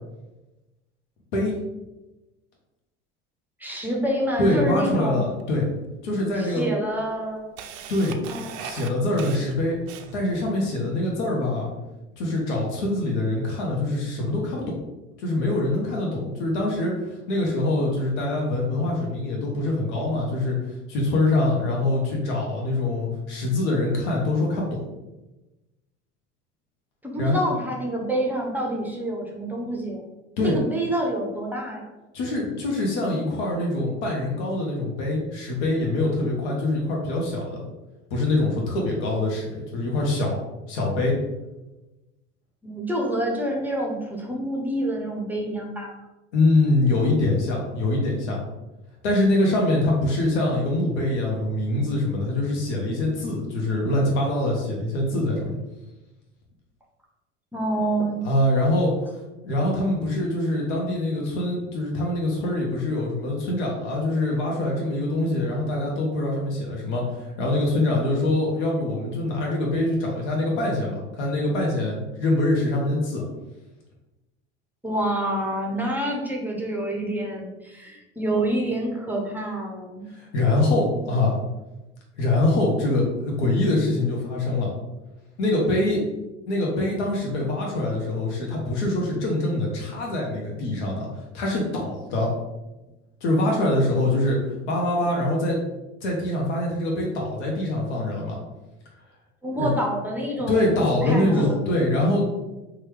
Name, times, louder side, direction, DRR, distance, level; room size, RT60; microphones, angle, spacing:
voice 1, 3.6-5.2 6.4-7.5 8.3-8.5 27.0-30.0 30.4-31.9 42.6-45.9 57.5-58.2 74.8-80.1 99.4-101.6, right 1 dB, 5° right, -1 dB, 0.7 m, -27 dB
voice 2, 4.4-5.7 6.0-6.7 7.9-8.2 8.6-9.8 10.1-11.7 12.2-14.8 15.2-20.6 20.9-24.8 27.2-27.4 30.4-30.6 32.1-37.6 38.1-40.4 40.7-41.1 46.3-48.4 49.0-55.6 58.2-58.9 59.4-73.2 80.1-81.4 82.2-84.7 85.4-86.0 86.5-91.1 91.3-92.3 93.2-94.4 94.7-95.6 96.0-98.4 99.6-99.7 100.5-102.3, left 2 dB, 70° left, -1 dB, 0.9 m, -24 dB
Camera, 5.4-5.5 6.4-6.5 6.9-10.4, right 8 dB, 55° right, 0.4 m, -39 dB
3.0 x 2.3 x 3.2 m, 1.0 s
hypercardioid pair, 80°, 35 cm